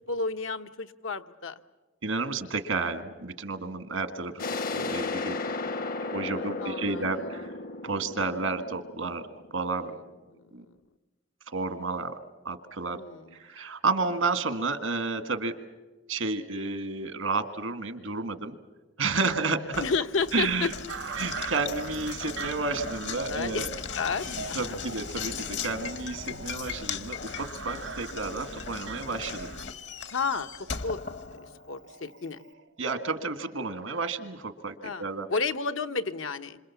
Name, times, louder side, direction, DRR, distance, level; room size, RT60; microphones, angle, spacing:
voice 1, 0.1-1.6 6.4-7.4 9.8-10.0 10.3-10.8 12.9-13.4 19.2-19.5 19.8-20.7 23.3-24.8 30.1-30.5 30.8-31.0 31.3-32.4 34.8-36.6, left 4 dB, 85° left, 8 dB, 0.9 m, -32 dB
voice 2, 2.0-4.4 4.7-5.4 6.0-7.6 7.8-9.2 9.5-9.9 10.5-10.6 11.5-12.2 12.4-13.0 13.3-15.5 16.1-18.5 19.0-19.6 20.3-20.7 21.2-23.7 24.5-29.5 32.8-35.3, right 3 dB, 85° right, 9 dB, 1.7 m, -31 dB
sound 1, 4.4-9.9, left 3 dB, 45° left, 0.7 m, -34 dB
Knock, 19.7-31.9, left 6 dB, 60° left, 1.1 m, -38 dB
sound 2, 20.9-34.1, right 6 dB, 65° right, 0.7 m, -42 dB
27.0 x 26.5 x 7.1 m, 1.2 s
head